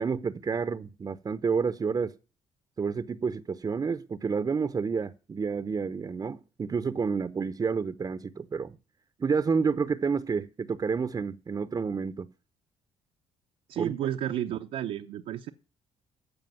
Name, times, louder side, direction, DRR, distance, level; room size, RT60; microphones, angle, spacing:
voice 1, 0.0-2.2 2.8-8.8 9.2-12.3 13.8-13.9, right 5 dB, 35° right, 0.7 m, -29 dB
voice 2, 13.7-15.5, right 11 dB, 75° right, 0.8 m, -32 dB
15.0 x 5.0 x 9.3 m
supercardioid pair, 75°, 12 cm